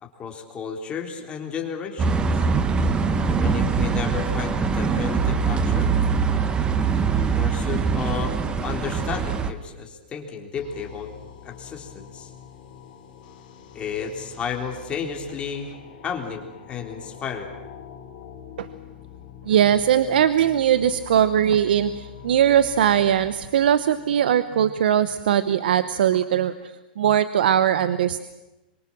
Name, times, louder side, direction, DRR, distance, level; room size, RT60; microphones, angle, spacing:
voice 1, 0.0-2.5 3.3-5.9 7.1-8.4 8.6-11.1 11.4-12.3 13.7-15.7 16.0-17.5, left 6 dB, 20° left, 3 dB, 3.6 m, -33 dB
sound 1, 2.0-9.5, right 5 dB, 15° right, 1.5 m, -23 dB
sound 2, 10.5-24.6, left 9 dB, 55° left, 4.7 m, -45 dB
voice 2, 19.4-26.5 27.0-28.2, right 10 dB, 75° right, 13 dB, 1.0 m, -20 dB
25.5 x 24.0 x 7.5 m, 1.0 s
hypercardioid pair, 140°, 5 cm